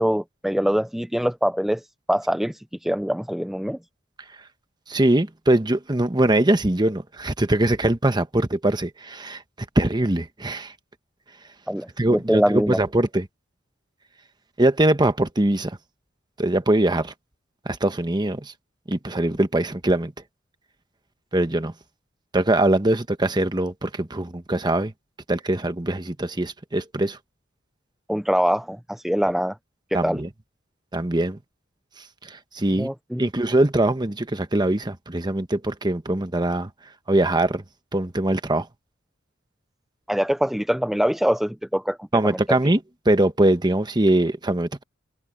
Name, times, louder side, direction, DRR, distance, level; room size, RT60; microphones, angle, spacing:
voice 1, 0.0-3.8 11.7-12.8 28.1-29.6 29.9-30.2 32.7-33.3 40.1-42.4, equal, ahead, 0.4 m, -24 dB
voice 2, 4.9-9.4 9.7-10.7 12.0-13.2 14.6-15.8 16.4-17.1 17.6-18.5 18.9-20.1 21.3-21.7 22.3-24.9 25.3-27.2 29.9-30.3 30.9-31.4 32.2-32.9 33.2-36.7 37.1-37.6 37.9-38.7 42.1-42.8 43.0-44.8, right 1 dB, 20° right, 1.1 m, -22 dB
open air
head